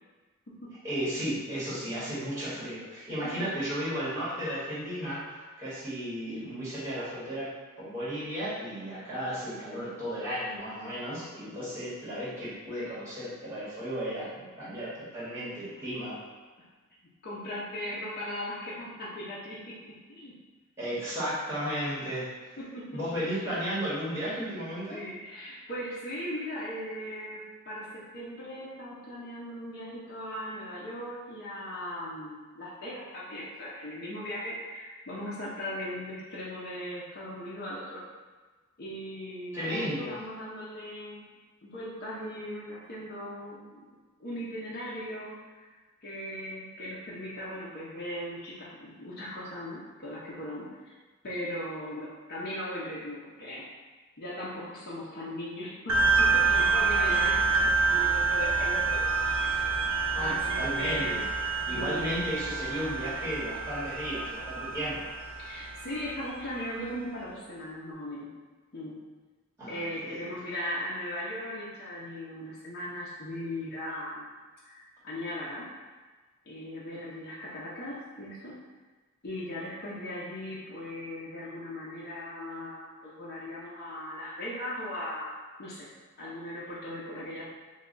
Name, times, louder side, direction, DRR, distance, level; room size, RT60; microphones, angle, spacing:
voice 1, 0.8-16.2 20.8-22.6 22.9-25.0 39.5-40.1 60.1-61.2 61.6-65.1 69.6-70.3, equal, 15° right, -11 dB, 1.3 m, -34 dB
voice 2, 17.2-20.3 22.6-22.9 23.3-23.6 24.9-38.0 38.8-41.3 41.6-43.8 44.2-45.7 46.0-50.7 51.2-53.7 54.2-59.0 59.4-59.9 60.2-61.3 61.7-62.2 65.4-68.3 68.7-69.0 69.7-74.3 74.6-75.7 76.5-78.5 79.2-85.3 85.6-85.9 86.2-87.4, left 1 dB, 45° left, -7 dB, 0.6 m, -38 dB
sound 1, 55.9-66.8, right 4 dB, 75° right, 0.5 m, -27 dB
3.2 x 2.2 x 3.8 m, 1.3 s
head